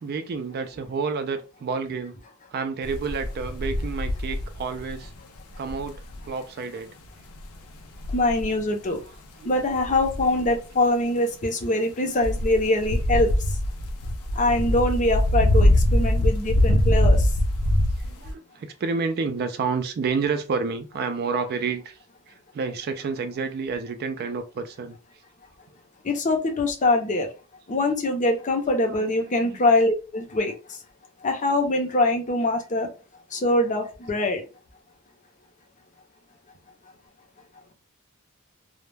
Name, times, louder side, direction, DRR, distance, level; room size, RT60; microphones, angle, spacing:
voice 1, 0.0-2.2 2.5-5.1 5.6-6.9 9.0-9.8 14.4-14.8 16.6-16.7 18.0-22.0 22.3-25.0 28.9-29.6, right 5 dB, 45° right, 0.3 m, -30 dB
sound 1, 2.8-5.1 5.5-6.3 7.4-7.5 8.0-8.6 9.8-10.6 12.2-18.3, left 1 dB, 90° left, 0.5 m, -23 dB
voice 2, 8.1-9.0 9.4-13.3 14.4-17.3 26.0-27.3 27.7-30.5 31.2-32.9 33.3-34.4, left 2 dB, 35° left, 0.6 m, -23 dB
2.2 x 2.0 x 3.1 m
head